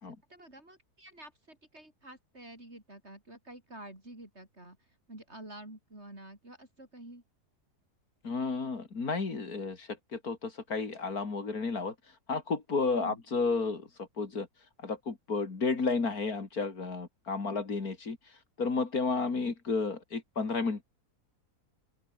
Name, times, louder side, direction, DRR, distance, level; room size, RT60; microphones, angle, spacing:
voice 1, 0.0-7.2 13.0-13.2, right 1 dB, 40° right, 6.8 m, -49 dB
voice 2, 8.2-11.9 12.3-14.5 14.8-18.2 18.6-20.8, left 4 dB, 65° left, 3.4 m, -32 dB
open air
omnidirectional pair, 1.7 m